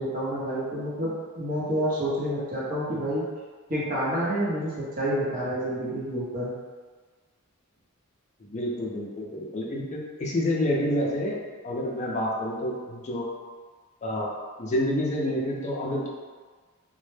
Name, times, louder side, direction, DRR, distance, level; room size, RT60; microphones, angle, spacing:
voice 1, 0.0-3.2 3.7-6.5, equal, 40° right, -7 dB, 0.7 m, -28 dB
voice 2, 8.4-13.3 14.0-14.3 14.6-16.1, left 1 dB, 30° left, -3 dB, 0.4 m, -28 dB
2.1 x 2.0 x 3.1 m, 1.4 s
head